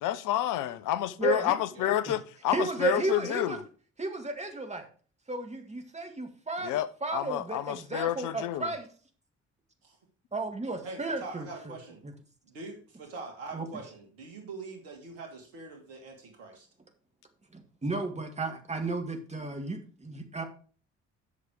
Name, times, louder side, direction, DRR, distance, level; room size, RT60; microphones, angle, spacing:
voice 1, 0.0-3.6 6.6-8.7, left 12 dB, 55° left, 0.7 m, -29 dB
voice 2, 1.2-1.5 2.1-2.2 2.5-3.6 4.0-4.9 5.3-8.9 10.3-11.5 12.0-12.1 13.5-13.7 17.5-20.4, right 3 dB, 20° right, 2.0 m, -33 dB
voice 3, 10.8-12.0 12.5-16.7, right 3 dB, 70° right, 2.5 m, -43 dB
8.4 x 6.3 x 5.0 m
figure-of-eight pair, 45°, 37 cm